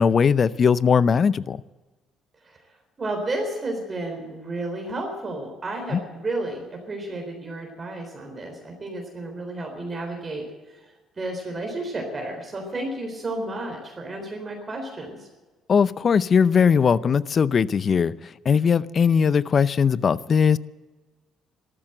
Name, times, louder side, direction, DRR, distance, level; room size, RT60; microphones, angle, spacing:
voice 1, 0.0-1.6 5.9-6.0 15.7-18.1 18.4-20.6, left 6 dB, 45° left, 0.6 m, -19 dB
voice 2, 3.0-15.3, right 2 dB, 30° right, 3.8 m, -32 dB
13.5 x 13.0 x 7.8 m
cardioid pair, 85°, 0 cm